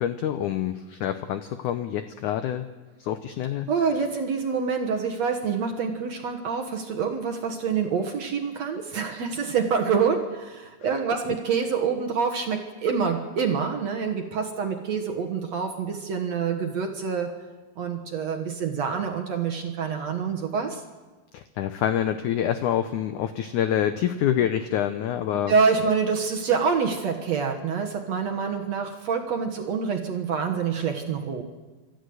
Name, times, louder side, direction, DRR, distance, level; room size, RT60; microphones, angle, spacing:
voice 1, 0.0-2.7 3.0-3.7 10.8-11.0 21.3-25.5, left 10 dB, 90° left, 10 dB, 1.7 m, -26 dB
voice 2, 3.7-17.4 17.8-20.8 25.5-31.4, right 6 dB, 60° right, 3 dB, 2.0 m, -26 dB
25.5 x 13.5 x 7.9 m, 1.3 s
omnidirectional pair, 4.5 m